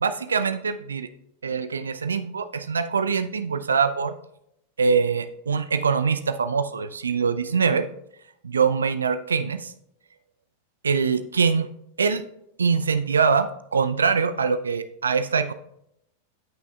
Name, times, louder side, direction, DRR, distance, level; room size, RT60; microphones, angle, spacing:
voice 1, 0.0-1.1 1.4-4.1 4.8-7.9 8.4-9.7 10.8-11.7 12.0-12.3 12.6-15.5, right 5 dB, 70° right, 11 dB, 0.5 m, -23 dB
14.0 x 6.0 x 2.3 m, 0.77 s
figure-of-eight pair, 90°, 0 cm